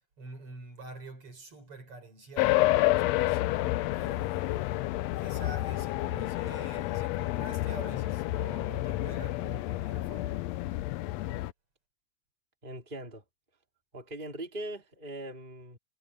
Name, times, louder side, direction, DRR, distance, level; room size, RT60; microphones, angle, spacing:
voice 1, 0.2-3.4 3.9-10.5, right 3 dB, 45° right, 5.4 m, -46 dB
sound 1, 2.4-11.5, left 17 dB, 85° left, 1.5 m, -29 dB
voice 2, 12.6-13.2 13.9-15.8, right 1 dB, 15° right, 4.3 m, -40 dB
omnidirectional pair, 3.7 m